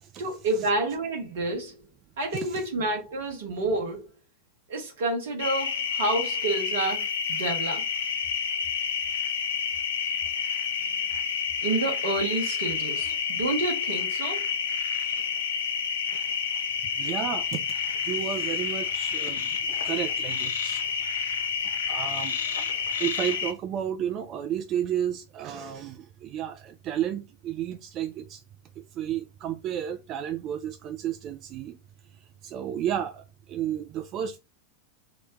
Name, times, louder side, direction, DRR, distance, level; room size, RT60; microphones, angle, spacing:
voice 1, 0.2-1.8 2.2-4.1 4.7-7.8 11.6-14.5, right 2 dB, 60° right, 0.8 m, -29 dB
sound 1, 5.4-23.5, left 6 dB, 65° left, 0.4 m, -29 dB
voice 2, 17.0-17.6 18.0-20.8 21.9-22.4 23.0-28.4 28.8-31.8 32.4-34.4, right 10 dB, 35° right, 0.3 m, -32 dB
2.9 x 2.1 x 3.6 m
figure-of-eight pair, 90°, 0 cm